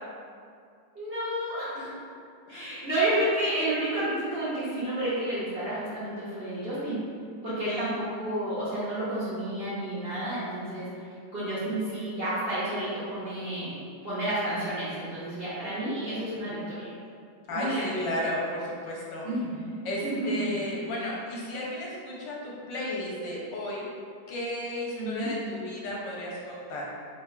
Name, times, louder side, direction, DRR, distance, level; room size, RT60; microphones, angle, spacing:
voice 1, 0.9-1.8 2.5-7.0 7.4-13.8 14.0-16.9 17.5-17.8 19.2-19.6 20.0-20.5 25.0-25.3, right 1 dB, 65° right, -11 dB, 0.5 m, -30 dB
voice 2, 7.4-7.9 17.5-19.3 19.8-23.8 24.3-26.9, left 1 dB, 70° left, -4 dB, 1.3 m, -34 dB
3.4 x 2.4 x 4.3 m, 2.3 s
omnidirectional pair, 2.2 m